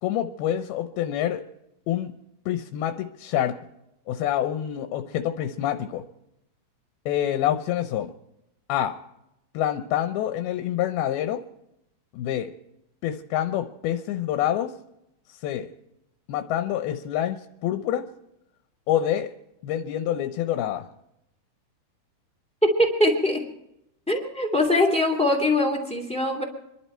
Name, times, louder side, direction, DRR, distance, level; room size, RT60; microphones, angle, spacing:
voice 1, 0.0-1.4 1.9-2.1 2.5-3.6 4.1-6.0 7.1-8.1 8.7-9.0 9.5-11.4 12.1-12.5 13.0-14.7 15.3-15.7 16.3-18.0 18.9-19.3 19.6-20.9, left 11 dB, 80° left, 7 dB, 2.6 m, -27 dB
voice 2, 22.8-23.4 24.1-26.4, left 1 dB, ahead, 2 dB, 1.5 m, -22 dB
27.0 x 11.5 x 4.4 m, 0.85 s
omnidirectional pair, 4.6 m